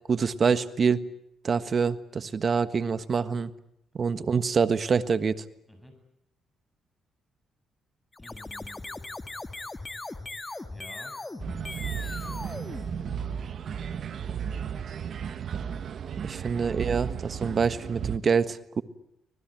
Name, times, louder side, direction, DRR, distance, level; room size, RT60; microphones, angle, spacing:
voice 1, 0.1-1.0 1.4-3.5 3.9-5.4 16.2-18.8, right 5 dB, 45° right, 13 dB, 1.5 m, -26 dB
sound 1, 8.1-13.6, left 2 dB, 20° left, 1.7 m, -39 dB
voice 2, 8.2-9.1 10.7-11.1 11.9-12.6 13.7-14.4, left 1 dB, ahead, 6 dB, 7.9 m, -52 dB
sound 2, 11.4-18.2, right 8 dB, 60° right, 1.1 m, -34 dB
25.5 x 19.5 x 9.2 m, 0.79 s
cardioid pair, 90°, 0 cm